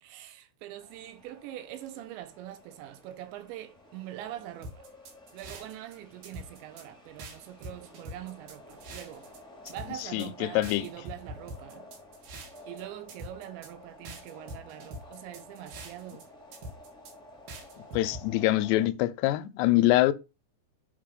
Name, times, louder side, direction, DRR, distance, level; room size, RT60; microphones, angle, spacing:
voice 1, 0.0-4.9 5.3-9.3 9.7-11.9 12.7-16.3, right 12 dB, 85° right, 3.2 m, -43 dB
sound 1, 0.8-18.9, left 1 dB, 5° left, 0.7 m, -52 dB
sound 2, 4.6-5.9 6.2-6.8 7.2-9.4 9.7-10.3 10.6-12.8 13.1-13.7 14.0-16.2 16.5-17.1 17.5-18.2, right 1 dB, 65° right, 3.9 m, -43 dB
voice 2, 10.1-10.9 17.9-20.1, left 16 dB, 80° left, 2.6 m, -24 dB
7.6 x 5.6 x 5.1 m
omnidirectional pair, 5.1 m